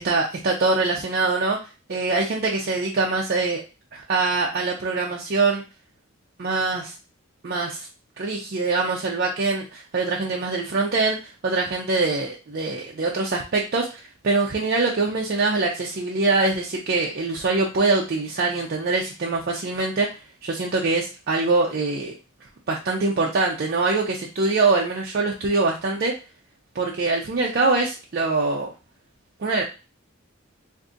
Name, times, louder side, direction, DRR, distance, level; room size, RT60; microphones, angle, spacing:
voice 1, 0.0-1.6 1.9-3.6 3.9-5.6 6.4-6.9 7.4-7.9 8.2-22.1 22.7-26.2 26.7-28.7 29.4-29.6, right 3 dB, 45° right, -1 dB, 0.5 m, -23 dB
3.8 x 2.6 x 2.5 m, 0.31 s
head